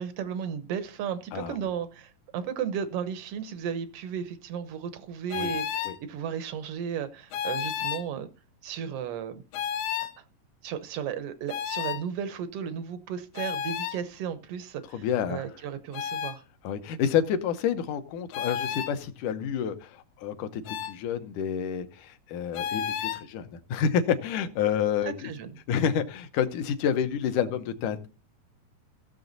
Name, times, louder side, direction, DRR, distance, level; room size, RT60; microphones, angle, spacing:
voice 1, 0.0-8.3 8.6-9.4 10.6-16.4 25.0-25.5, right 8 dB, 80° right, 1.3 m, -34 dB
voice 2, 1.3-1.7 5.4-5.5 5.9-6.0 14.9-15.4 16.6-25.3 25.7-28.1, left 8 dB, 70° left, 2.3 m, -29 dB
sound 1, 5.3-6.0 7.3-8.1 9.5-10.1 11.5-12.0 13.4-14.0 15.9-16.4 18.3-18.9 20.7-21.0 22.5-23.2, left 9 dB, 90° left, 2.5 m, -32 dB
16.0 x 6.9 x 4.0 m
omnidirectional pair, 3.9 m